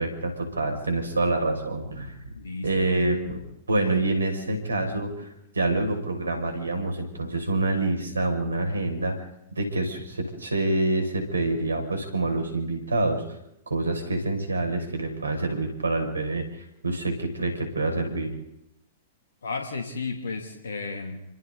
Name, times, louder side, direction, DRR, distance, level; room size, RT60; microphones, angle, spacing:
voice 1, 0.0-2.1 2.6-3.4 3.7-5.3 5.5-9.1 9.5-13.2 13.7-16.5 16.8-18.3, right 2 dB, 80° right, 4 dB, 6.4 m, -26 dB
voice 2, 2.3-2.7 19.4-21.2, left 4 dB, 70° left, 3 dB, 3.0 m, -33 dB
29.0 x 25.0 x 4.1 m, 0.83 s
figure-of-eight pair, 105°, 0 cm